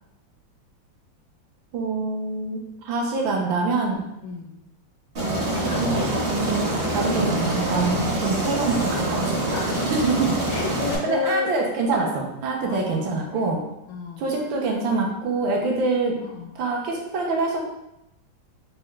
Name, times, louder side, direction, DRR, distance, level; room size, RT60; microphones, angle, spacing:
voice 1, 1.7-2.6 2.8-4.0 5.4-6.7 6.9-9.3 10.0-10.3 11.0-13.6 14.2-16.2 16.6-17.6, right 3 dB, 80° right, 0 dB, 1.3 m, -25 dB
voice 2, 4.2-4.6 5.5-6.2 6.6-6.7 9.5-9.9 10.5-11.5 12.6-13.5 13.9-14.3 16.2-16.5, left 5 dB, 75° left, 0 dB, 1.1 m, -32 dB
Aircraft, 5.1-10.9, right 1 dB, 60° right, 0.6 m, -25 dB
4.6 x 2.1 x 3.0 m, 0.86 s
omnidirectional pair, 2.2 m